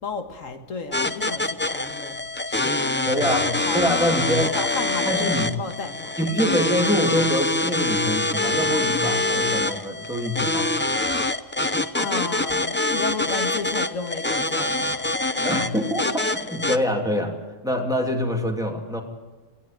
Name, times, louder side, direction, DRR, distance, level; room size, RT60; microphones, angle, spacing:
voice 1, 0.0-2.2 2.5-3.2 3.6-4.0 4.4-6.2 11.9-15.2, left 4 dB, 75° left, 6 dB, 1.9 m, -33 dB
sound 1, 0.9-16.8, left 2 dB, 15° left, 0.4 m, -25 dB
voice 2, 3.0-4.6 5.0-5.5 6.2-10.7 15.4-17.3 17.6-19.0, equal, 5° right, 2 dB, 2.9 m, -25 dB
19.0 x 17.0 x 9.1 m, 1.3 s
omnidirectional pair, 1.4 m